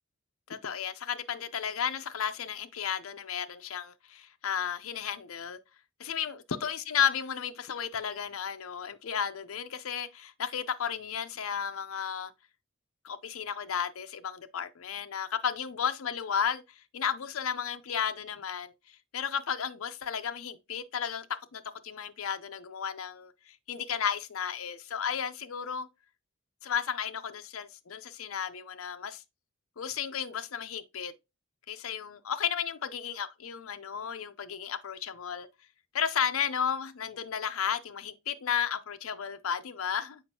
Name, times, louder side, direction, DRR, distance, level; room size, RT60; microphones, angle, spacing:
voice 1, 0.5-5.6 6.0-12.3 13.0-21.3 21.5-25.9 26.6-29.2 29.8-31.1 31.7-35.5 35.9-40.2, left 8 dB, 80° left, 0.6 m, -33 dB
7.1 x 5.2 x 2.8 m
head